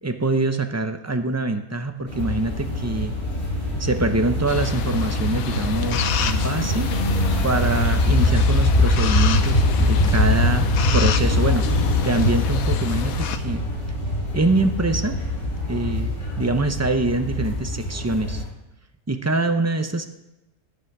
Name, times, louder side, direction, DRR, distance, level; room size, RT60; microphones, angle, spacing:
voice 1, 0.0-3.1 3.8-6.9 7.4-10.7 10.9-13.6 14.3-15.2 15.7-18.4 19.1-20.0, right 2 dB, 20° right, 7 dB, 0.4 m, -24 dB
sound 1, 2.1-18.4, left 1 dB, 45° left, 6.8 m, -23 dB
sound 2, 4.5-13.4, left 8 dB, 70° left, 1.2 m, -29 dB
17.0 x 10.5 x 4.8 m, 0.94 s
omnidirectional pair, 1.6 m